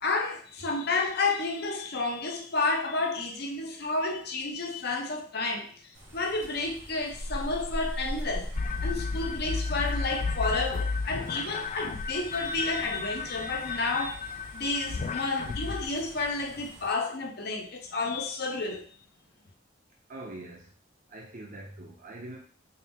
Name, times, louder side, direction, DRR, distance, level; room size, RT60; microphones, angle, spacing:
voice 1, 0.0-5.7 6.1-8.5 8.8-14.2 14.5-18.9, left 3 dB, 55° left, 3 dB, 0.7 m, -31 dB
sound 1, 5.9-16.9, equal, 85° right, 1.7 m, -41 dB
sound 2, 8.6-15.9, left 4 dB, 35° left, 0.3 m, -33 dB
voice 2, 20.1-20.7 21.1-22.4, right 2 dB, 45° right, 0 dB, 0.6 m, -43 dB
4.5 x 2.0 x 3.5 m, 0.40 s
head